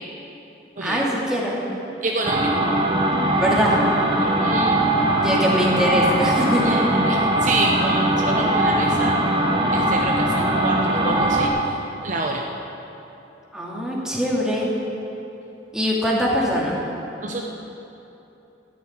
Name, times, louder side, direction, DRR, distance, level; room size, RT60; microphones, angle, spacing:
voice 1, 0.8-1.6 3.4-3.8 5.2-6.8 13.5-14.7 15.7-16.8, equal, 5° right, -5 dB, 2.6 m, -22 dB
voice 2, 2.0-2.5 4.2-4.8 6.6-6.8 7.1-9.2 9.7-11.8 12.0-12.4 17.2-17.4, right 2 dB, 45° right, 1 dB, 0.9 m, -27 dB
sound 1, 2.2-11.5, right 1 dB, 30° right, 1.4 m, -20 dB
13.5 x 8.2 x 9.6 m, 3.0 s
head